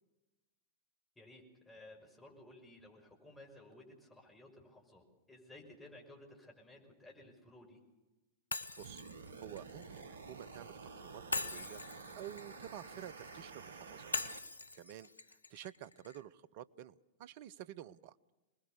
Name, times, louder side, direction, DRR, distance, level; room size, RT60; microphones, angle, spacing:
voice 1, 1.2-7.8, left 1 dB, 10° left, 0 dB, 5.9 m, -56 dB
Shatter, 8.5-10.6 11.3-13.4 14.1-16.2, left 3 dB, 80° left, 0.8 m, -43 dB
voice 2, 8.5-11.8 12.1-14.1 14.7-15.1 15.5-18.2, right 11 dB, 45° right, 17 dB, 0.7 m, -50 dB
sound 1, 8.8-14.4, right 4 dB, 65° right, 1.1 m, -51 dB
24.5 x 21.0 x 6.8 m, 1.1 s
figure-of-eight pair, 95°, 0 cm